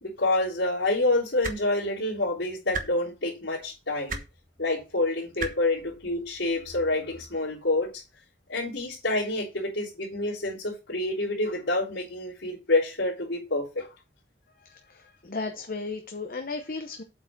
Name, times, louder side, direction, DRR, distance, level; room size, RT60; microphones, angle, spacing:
voice 1, 0.0-4.2 4.6-8.0 8.5-13.9, left 2 dB, 90° left, 3.4 m, -27 dB
sound 1, 1.4-1.6 2.7-2.8 4.1-4.2 5.4-5.5 6.7-6.8, right 3 dB, 45° right, 1.2 m, -31 dB
voice 2, 14.6-17.0, left 3 dB, 50° left, 0.8 m, -35 dB
8.0 x 4.6 x 5.9 m
head